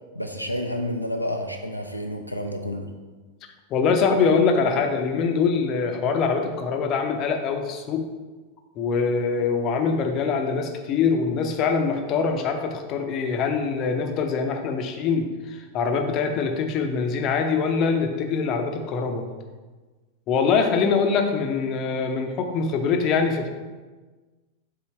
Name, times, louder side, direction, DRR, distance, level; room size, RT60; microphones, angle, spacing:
voice 1, 0.1-2.9, left 1 dB, 90° left, 3 dB, 0.4 m, -30 dB
voice 2, 3.7-8.1 8.8-19.3 20.3-23.5, left 5 dB, 35° left, 5 dB, 0.7 m, -23 dB
5.8 x 3.8 x 4.5 m, 1.3 s
figure-of-eight pair, 90°, 0 cm